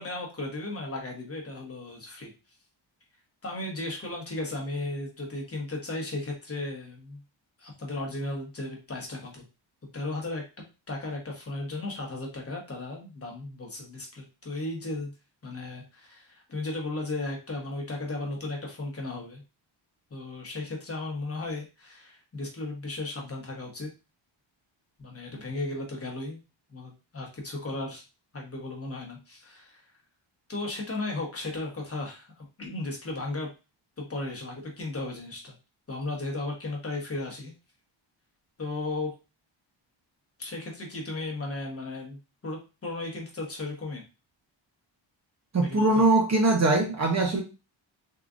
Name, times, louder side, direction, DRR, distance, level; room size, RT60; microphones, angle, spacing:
voice 1, 0.0-2.3 3.4-7.2 7.6-9.4 9.9-10.4 10.9-15.1 15.4-19.4 20.1-23.9 25.0-26.4 26.7-28.0 28.3-29.9 30.5-33.5 34.0-35.5 35.9-37.5 38.6-39.1 40.4-42.2 42.4-44.0 45.6-46.0, left 2 dB, 30° left, 0 dB, 1.0 m, -35 dB
voice 2, 45.5-47.4, right 2 dB, 35° right, 1 dB, 0.6 m, -22 dB
3.6 x 2.4 x 2.4 m, 0.29 s
wide cardioid pair, 140°, 47 cm